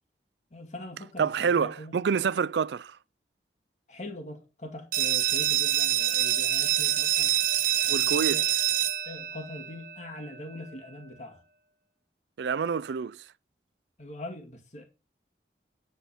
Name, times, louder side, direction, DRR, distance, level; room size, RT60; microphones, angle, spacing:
voice 1, 0.5-2.0 3.9-7.3 7.8-8.5 9.0-11.4 14.0-14.8, left 1 dB, 40° left, 2.2 m, -42 dB
voice 2, 1.2-3.0 7.9-8.4 12.4-13.2, right 6 dB, 80° right, 0.4 m, -27 dB
sound 1, 4.9-10.4, right 12 dB, 50° right, 0.8 m, -26 dB
10.0 x 4.4 x 5.5 m
head